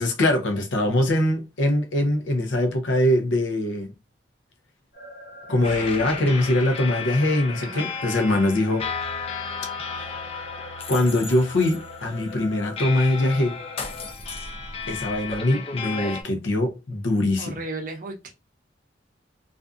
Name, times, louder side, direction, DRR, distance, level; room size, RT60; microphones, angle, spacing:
voice 1, 0.0-3.9 5.5-8.8 10.9-13.5 14.9-17.6, left 1 dB, 90° left, 0.6 m, -22 dB
sound 1, 4.9-14.1, left 2 dB, 55° left, 0.8 m, -43 dB
sound 2, 5.6-16.2, left 5 dB, 30° left, 0.3 m, -34 dB
voice 2, 17.4-18.3, right 2 dB, 45° right, 0.5 m, -35 dB
2.5 x 2.3 x 2.4 m
head